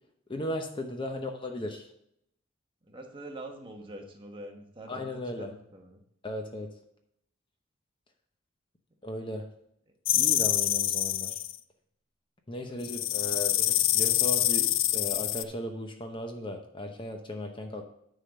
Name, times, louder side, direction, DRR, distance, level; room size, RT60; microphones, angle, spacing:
voice 1, 0.3-1.9 4.9-5.5 6.2-6.7 9.0-9.5 10.1-11.4 12.5-17.8, left 1 dB, 25° left, 4 dB, 0.8 m, -36 dB
voice 2, 2.8-6.0 12.7-13.3, right 1 dB, 25° right, 2 dB, 1.1 m, -45 dB
sound 1, 10.0-11.6 12.8-15.4, left 14 dB, 65° left, 0.4 m, -26 dB
10.0 x 3.8 x 6.4 m, 0.73 s
head